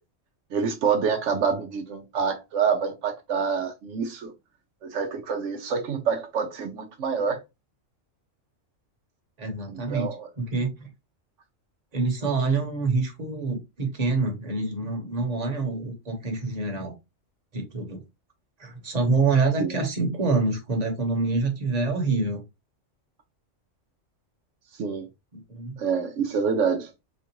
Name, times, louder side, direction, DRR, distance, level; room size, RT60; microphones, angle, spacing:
voice 1, 0.5-4.3 4.8-7.4 9.7-10.3 19.6-19.7 24.8-25.1 25.8-26.9, right 6 dB, 75° right, 0.9 m, -27 dB
voice 2, 9.4-10.1 10.4-10.9 11.9-17.0 17.5-18.0 18.6-22.4 25.3-25.8, right 3 dB, 35° right, 1.1 m, -26 dB
4.3 x 2.4 x 2.8 m
omnidirectional pair, 1.3 m